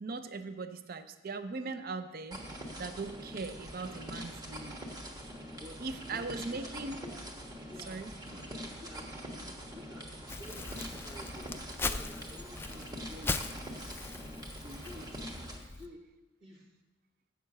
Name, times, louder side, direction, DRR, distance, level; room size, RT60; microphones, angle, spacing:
voice 1, 0.0-2.4 2.8-4.8 5.8-7.0 7.9-8.1, right 3 dB, 45° right, 10 dB, 0.5 m, -39 dB
sound 1, 2.3-15.6, equal, 20° right, 1.3 m, -44 dB
voice 2, 5.6-6.7 7.0-7.2 7.7-14.0 14.6-16.1 16.4-16.7, left 1 dB, 60° right, -6 dB, 1.8 m, -52 dB
Crumpling crinkling, 10.3-15.9, left 3 dB, 10° left, 0.3 m, -39 dB
8.1 x 6.7 x 7.6 m, 1.1 s
head